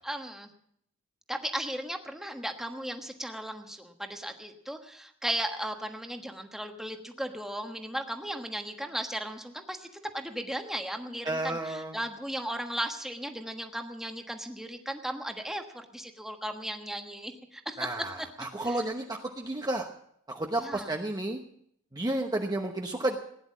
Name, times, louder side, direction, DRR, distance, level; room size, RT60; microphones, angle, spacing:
voice 1, 0.0-0.5 1.3-9.8 10.1-17.9 18.2-18.3 18.6-18.8 20.6-20.9, right 1 dB, ahead, 4 dB, 1.3 m, -36 dB
voice 2, 11.2-12.0 17.8-19.9 20.3-21.4 21.9-23.2, right 1 dB, 20° right, 2 dB, 1.0 m, -31 dB
16.5 x 10.5 x 7.3 m, 0.69 s
head